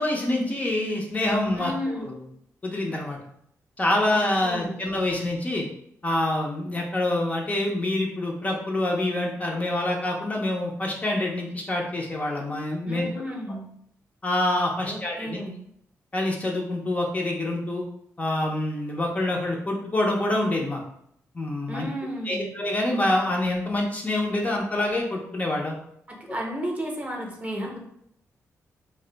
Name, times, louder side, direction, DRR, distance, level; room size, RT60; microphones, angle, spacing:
voice 1, 0.0-2.2 2.6-3.2 3.8-5.7 6.0-13.1 14.2-15.4 16.1-17.8 18.2-20.8 21.3-21.9 22.2-25.7, left 1 dB, 25° left, -1 dB, 0.5 m, -26 dB
voice 2, 1.5-2.1 4.0-4.8 12.9-13.7 14.8-15.6 21.7-22.5 26.1-27.8, equal, 25° right, 0 dB, 0.7 m, -33 dB
2.6 x 2.1 x 3.8 m, 0.72 s
cardioid pair, 100°, 6 cm